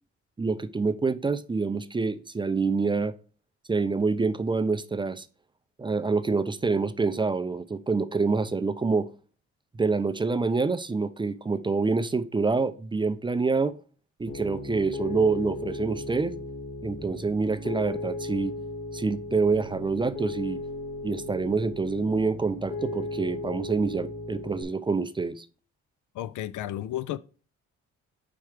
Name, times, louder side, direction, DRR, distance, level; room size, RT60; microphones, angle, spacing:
voice 1, 0.4-3.1 3.7-5.3 5.8-9.1 9.8-13.8 14.2-16.4 16.8-18.6 18.9-20.6 21.0-25.5, right 4 dB, 15° right, 0.4 m, -26 dB
Piano, 14.3-24.6, left 2 dB, 35° left, 1.4 m, -36 dB
voice 2, 26.2-27.2, left 13 dB, 75° left, 0.5 m, -32 dB
4.7 x 4.4 x 4.8 m
cardioid pair, 90°, 30 cm